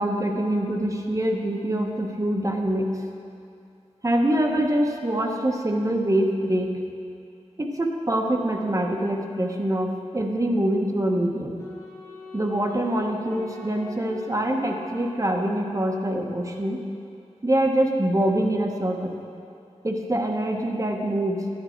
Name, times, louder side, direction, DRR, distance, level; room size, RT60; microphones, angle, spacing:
voice 1, 0.0-3.0 4.0-6.8 7.6-11.6 12.3-16.8 17.4-19.2 19.8-21.5, right 1 dB, 25° right, 2 dB, 1.1 m, -24 dB
Wind instrument woodwind instrument, 11.6-16.0, left 4 dB, 30° left, 2.9 m, -43 dB
11.5 x 9.7 x 4.5 m, 2.5 s
wide cardioid pair, 70°, 12 cm